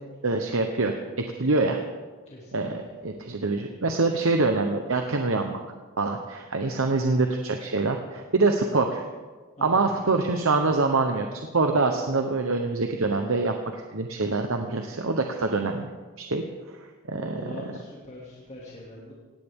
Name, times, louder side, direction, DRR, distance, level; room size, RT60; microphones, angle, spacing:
voice 1, 0.2-1.8 2.5-5.6 6.0-9.0 9.6-15.9 16.2-16.4 17.1-17.5, right 3 dB, 70° right, 4 dB, 1.0 m, -25 dB
voice 2, 9.6-10.0 17.1-19.1, left 1 dB, 35° left, -5 dB, 2.6 m, -42 dB
18.0 x 17.0 x 3.7 m, 1.4 s
head